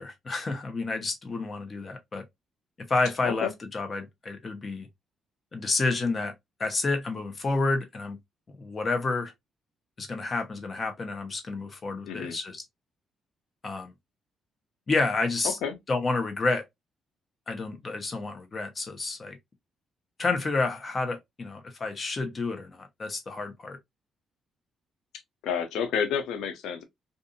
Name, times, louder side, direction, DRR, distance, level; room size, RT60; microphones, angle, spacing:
voice 1, 0.0-2.2 2.9-4.9 5.5-6.3 6.6-8.2 8.5-9.3 10.0-12.6 13.6-13.9 14.9-15.6 15.9-16.6 17.5-19.4 20.2-23.8, left 3 dB, 35° left, 0.8 m, -29 dB
voice 2, 15.4-15.8 25.4-26.8, left 7 dB, 85° left, 0.5 m, -30 dB
2.6 x 2.5 x 2.5 m
cardioid pair, 90°, 0 cm